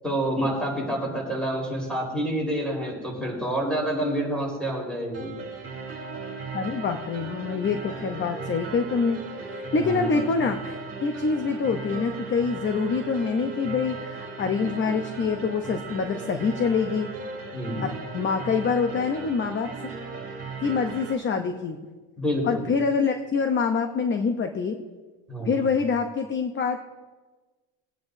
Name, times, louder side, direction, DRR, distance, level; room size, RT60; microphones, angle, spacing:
voice 1, 0.0-5.3 9.8-10.2 17.5-17.9 22.2-22.7 25.3-25.7, right 1 dB, ahead, -3 dB, 4.0 m, -28 dB
sound 1, 5.1-21.1, right 4 dB, 30° right, 2.6 m, -37 dB
voice 2, 6.5-17.1 17.8-19.9 20.6-21.8 22.4-24.8 25.5-26.8, left 5 dB, 25° left, 6 dB, 0.7 m, -26 dB
22.0 x 9.1 x 2.6 m, 1.3 s
cardioid pair, 150°, 46 cm